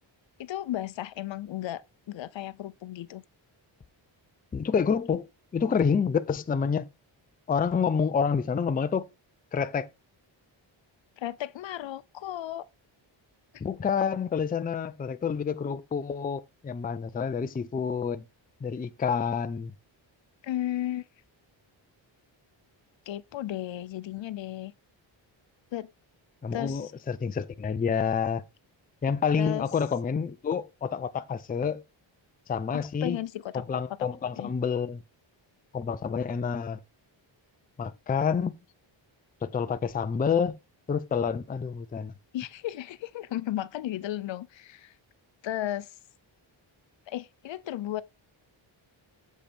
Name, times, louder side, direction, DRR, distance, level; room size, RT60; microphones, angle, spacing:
voice 1, 0.4-3.2 11.2-12.7 13.5-13.6 20.4-21.0 23.1-24.7 25.7-25.9 26.5-26.9 29.4-29.6 32.7-33.6 34.0-34.1 34.4-34.5 42.3-44.9 45.4-45.9 47.1-48.0, left 13 dB, 70° left, 0.6 m, -34 dB
voice 2, 4.5-5.3 5.5-6.9 7.5-9.0 9.5-9.9 13.6-18.2 18.6-19.7 26.4-28.4 29.0-31.8 32.5-33.2 33.5-35.0 35.7-36.8 37.8-38.5 39.4-40.5 40.9-42.1, left 6 dB, 20° left, 0.4 m, -28 dB
7.4 x 5.1 x 4.2 m
wide cardioid pair, 140°, 47 cm